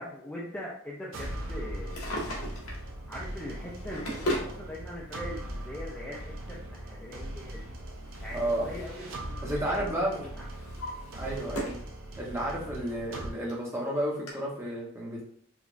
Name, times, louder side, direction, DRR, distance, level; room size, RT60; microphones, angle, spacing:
voice 1, 0.0-2.0 3.1-7.7 8.2-10.5 11.2-11.4 12.8-12.9, left 1 dB, 10° left, -6 dB, 0.5 m, -42 dB
sound 1, 1.1-13.3, right 1 dB, 60° right, 0.7 m, -40 dB
Drawer open or close, 1.7-2.9 3.6-4.6 5.6-5.7 7.5-9.0 9.3-9.7 10.2-11.9 12.3-12.4 13.2-13.3 13.5-13.6 14.3-14.4, equal, 80° left, 1.3 m, -37 dB
voice 2, 8.3-8.7 9.4-10.2 11.1-11.8 12.2-15.2, right 1 dB, 10° right, -4 dB, 1.0 m, -32 dB
4.9 x 2.5 x 2.6 m, 0.62 s
head